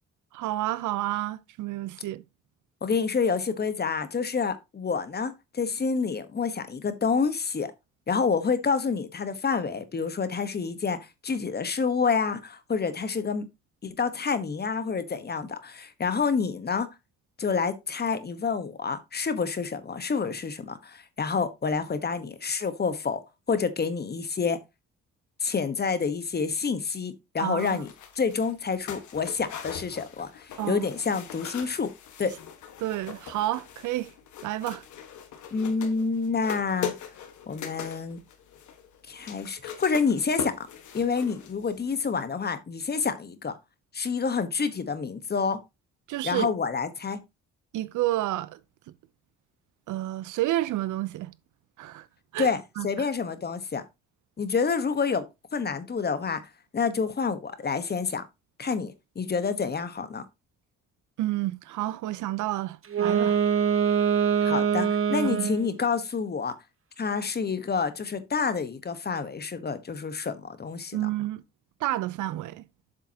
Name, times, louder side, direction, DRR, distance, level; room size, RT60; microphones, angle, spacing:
voice 1, 0.3-2.2 27.4-27.8 30.6-30.9 32.8-34.1 34.4-34.8 46.1-46.5 47.7-48.6 49.9-51.3 51.8-52.1 52.3-52.5 52.8-52.9 61.2-63.4 65.2-65.5 70.9-71.4 71.8-72.6, right 15 dB, 80° right, 0.7 m, -30 dB
voice 2, 2.8-7.7 8.1-11.0 11.2-13.5 13.8-16.9 17.4-23.2 23.5-24.6 25.4-27.9 28.1-31.9 32.2-32.3 35.5-36.9 37.5-38.2 39.1-40.5 40.9-43.5 43.9-45.6 46.2-47.2 52.4-53.8 54.4-56.4 56.7-58.2 58.6-60.2 64.4-66.5 67.0-71.1, left 5 dB, 35° left, 1.2 m, -28 dB
sound 1, 27.6-41.9 42.1-42.2, left 8 dB, 75° left, 1.5 m, -41 dB
Wind instrument woodwind instrument, 62.8-65.8, right 7 dB, 45° right, 1.2 m, -24 dB
7.6 x 6.9 x 2.8 m
cardioid pair, 90°, 30 cm